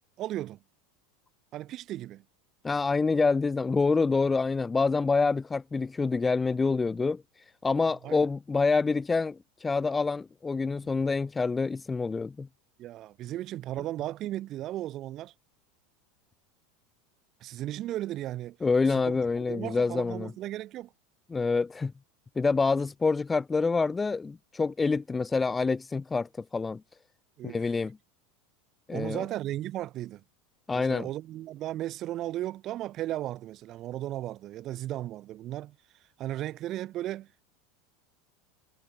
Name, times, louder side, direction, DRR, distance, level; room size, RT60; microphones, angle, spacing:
voice 1, 0.2-0.6 1.5-2.2 8.0-8.2 10.8-10.9 12.8-15.3 17.4-18.6 18.9-19.1 19.5-20.9 27.4-27.7 28.9-30.2 30.7-35.8 36.2-37.4, right 14 dB, 45° right, 7.3 m, -35 dB
voice 2, 2.6-7.2 7.6-12.5 18.6-20.3 21.3-21.9 22.4-26.8 27.4-28.0 28.9-29.2 30.7-31.1, left 4 dB, 15° left, 2.7 m, -27 dB
supercardioid pair, 125°, 0 cm